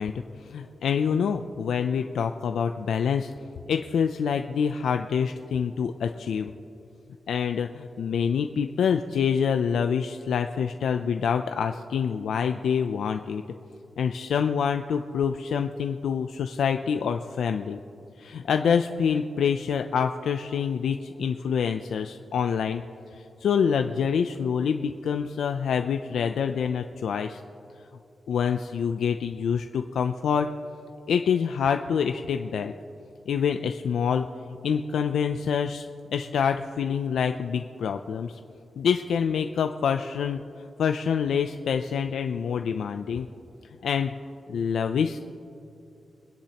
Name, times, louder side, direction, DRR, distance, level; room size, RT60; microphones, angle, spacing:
voice 1, 0.0-3.3 3.7-6.5 7.3-13.4 14.0-17.8 18.2-22.8 23.1-27.4 28.3-30.5 31.1-32.7 33.3-34.2 34.6-38.3 38.8-40.4 40.8-43.3 43.8-44.1 44.5-45.2, left 7 dB, 90° left, 6 dB, 0.4 m, -26 dB
24.5 x 10.0 x 2.9 m, 2.7 s
cardioid pair, 90°, 0 cm